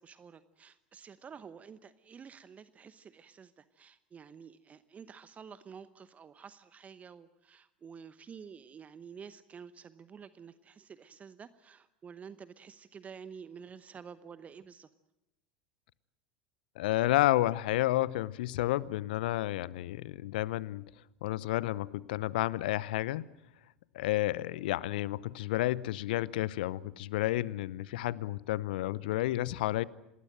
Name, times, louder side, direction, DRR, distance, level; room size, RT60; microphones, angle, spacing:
voice 1, 0.0-14.9, right 6 dB, 25° right, 14 dB, 1.0 m, -50 dB
voice 2, 16.8-20.9 21.2-23.3 23.9-29.8, left 16 dB, 65° left, 21 dB, 0.8 m, -31 dB
26.5 x 20.0 x 7.7 m, 0.92 s
figure-of-eight pair, 80°, 5 cm